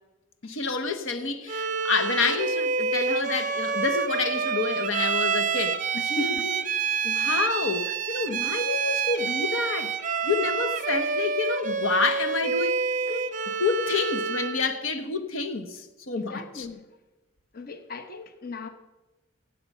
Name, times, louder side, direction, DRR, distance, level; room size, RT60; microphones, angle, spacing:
voice 1, 0.4-6.6 7.0-12.7 13.1-16.7, left 4 dB, 75° left, 1.0 m, -29 dB
Bowed string instrument, 1.5-14.7, right 5 dB, 40° right, 0.5 m, -28 dB
voice 2, 5.9-6.4 16.2-16.8 17.5-18.7, left 3 dB, 45° left, 0.8 m, -37 dB
16.0 x 7.8 x 5.4 m
head